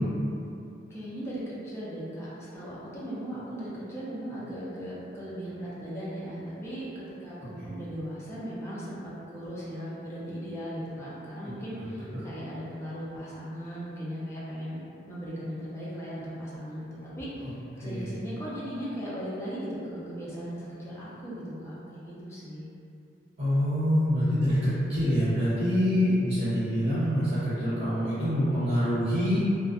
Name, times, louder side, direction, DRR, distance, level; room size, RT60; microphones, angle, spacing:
voice 1, 0.9-14.8 15.1-22.7, equal, 15° left, -9 dB, 0.5 m, -38 dB
voice 2, 17.8-18.2 23.4-29.5, equal, 35° right, -14 dB, 0.9 m, -26 dB
2.5 x 2.2 x 2.4 m, 2.7 s
head